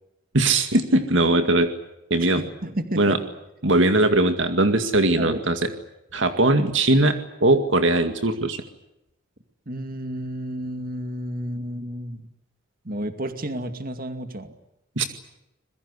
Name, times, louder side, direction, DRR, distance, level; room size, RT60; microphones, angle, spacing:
voice 1, 0.3-1.7 2.1-2.4 3.0-3.2 3.6-5.6 6.1-8.6 15.0-15.1, right 2 dB, 65° right, 8 dB, 2.2 m, -20 dB
voice 2, 2.2-3.2 5.2-5.4 9.7-12.2 12.8-14.5, right 1 dB, 45° right, 8 dB, 2.4 m, -31 dB
26.0 x 22.0 x 8.3 m, 0.88 s
head